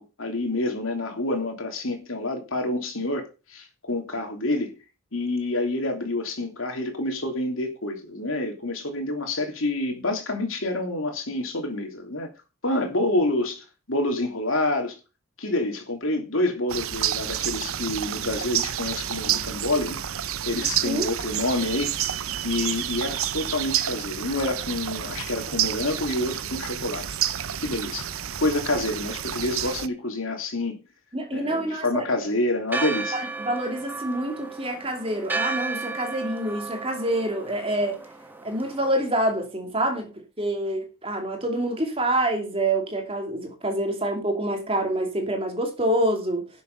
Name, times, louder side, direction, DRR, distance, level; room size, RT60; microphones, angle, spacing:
voice 1, 0.0-4.7 5.1-12.3 12.6-15.0 15.4-20.0 20.5-21.9 22.4-27.0 27.6-28.0 28.4-30.8 31.3-33.1, left 2 dB, 65° left, 3.1 m, -28 dB
sound 1, 16.7-29.9, right 10 dB, 75° right, 0.7 m, -29 dB
voice 2, 31.1-32.0 33.1-38.0 38.4-46.5, right 1 dB, 25° right, 2.6 m, -27 dB
Church bell, 32.7-39.0, right 3 dB, 10° right, 1.3 m, -33 dB
12.0 x 7.1 x 5.5 m
head